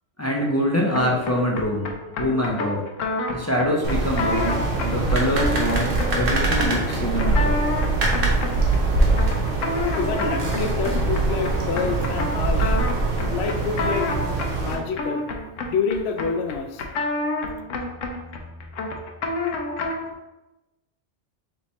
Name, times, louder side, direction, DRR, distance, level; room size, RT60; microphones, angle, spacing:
voice 1, 0.2-2.8 3.3-7.5, left 1 dB, 25° left, -2 dB, 0.4 m, -24 dB
sound 1, 0.9-20.1, left 2 dB, 90° left, 1.0 m, -30 dB
sound 2, 3.8-14.7, right 3 dB, 80° right, 1.2 m, -23 dB
voice 2, 10.0-12.8 13.3-14.1 14.6-15.3 15.6-16.8, left 5 dB, 65° left, 6 dB, 0.7 m, -27 dB
3.4 x 3.1 x 4.0 m, 1.0 s
omnidirectional pair, 1.3 m